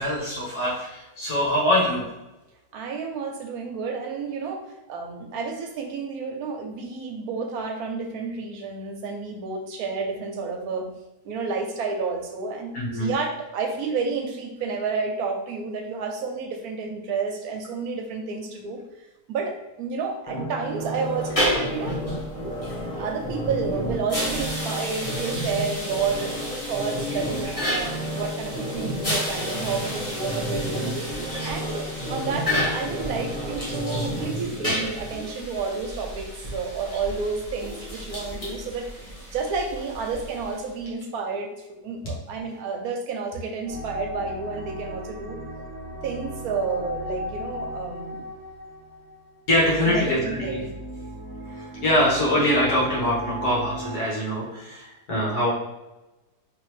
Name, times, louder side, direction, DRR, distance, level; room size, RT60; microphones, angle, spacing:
voice 1, 0.0-2.1 12.7-13.1 49.5-50.6 51.5-55.5, left 1 dB, 65° left, -6 dB, 1.9 m, -23 dB
voice 2, 2.7-10.9 11.2-18.8 19.3-22.0 23.0-26.4 26.6-38.9 39.3-41.5 41.8-45.4 46.0-48.3 49.8-50.7, right 4 dB, 70° right, 3 dB, 1.1 m, -30 dB
sound 1, 20.3-35.3 35.7-35.8, equal, 5° left, 0.7 m, -32 dB
sound 2, 21.2-40.8, equal, 25° left, 1.0 m, -32 dB
sound 3, 43.7-54.0, equal, 50° right, 0.7 m, -36 dB
4.1 x 3.1 x 3.2 m, 1.0 s
omnidirectional pair, 1.8 m